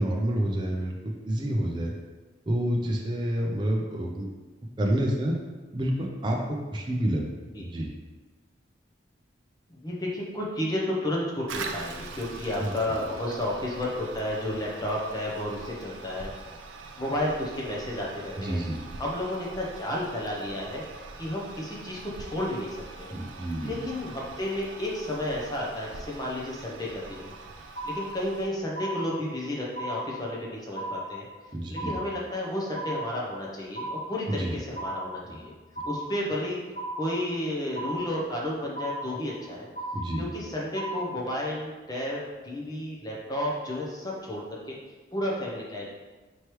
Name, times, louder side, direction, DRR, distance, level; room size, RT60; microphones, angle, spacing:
voice 1, 0.0-1.9 2.5-4.3 4.8-5.3 5.7-7.2 7.6-7.9 12.6-12.7 18.4-18.8 23.1-23.7 31.5-32.0 34.3-34.6 35.3-35.4 39.9-40.2, right 1 dB, 25° right, 0 dB, 0.4 m, -28 dB
voice 2, 9.7-16.3 17.0-18.6 19.0-20.8 21.2-23.2 23.6-27.3 27.8-31.3 31.7-35.5 35.8-36.6 37.0-39.7 40.2-44.7 45.1-45.8, left 1 dB, 20° left, -3 dB, 0.7 m, -32 dB
Toilet flush, 11.5-28.5, right 3 dB, 85° right, 0.4 m, -43 dB
sound 1, 27.1-27.4 27.7-28.4 28.7-29.4 29.7-30.4 30.7-31.4 31.7-32.4 32.7-33.4 33.7-34.4 34.7-35.4 35.7-36.4 36.7-37.4 37.7-38.4 38.7-39.4 39.7-40.4 40.7-41.4, right 1 dB, 45° left, 1.1 m, -36 dB
4.5 x 3.1 x 3.0 m, 1.3 s
head